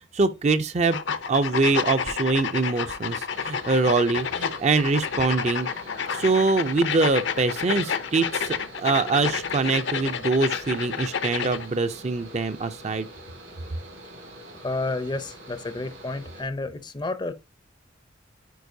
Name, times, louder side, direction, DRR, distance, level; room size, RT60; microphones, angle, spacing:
voice 1, 0.1-1.0 1.3-5.7 6.1-13.1, right 3 dB, 35° right, 0.4 m, -24 dB
sound 1, 0.9-11.7, left 6 dB, 60° left, 0.6 m, -30 dB
Mechanical fan, 3.3-16.4, right 1 dB, 85° right, 3.7 m, -45 dB
voice 2, 14.5-17.3, left 2 dB, 20° left, 0.5 m, -31 dB
9.3 x 4.4 x 2.6 m
head